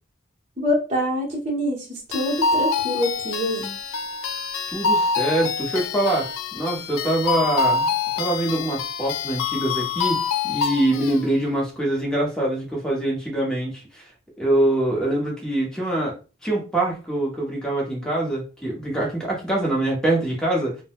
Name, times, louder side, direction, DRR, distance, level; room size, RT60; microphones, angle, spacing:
voice 1, 0.6-3.8, equal, 30° right, 0.8 m, -25 dB
sound 1, 2.1-11.2, left 4 dB, 85° left, 0.3 m, -25 dB
voice 2, 4.7-14.0 14.4-16.1 16.4-20.8, right 1 dB, 5° left, 0.8 m, -24 dB
3.7 x 2.0 x 2.3 m
head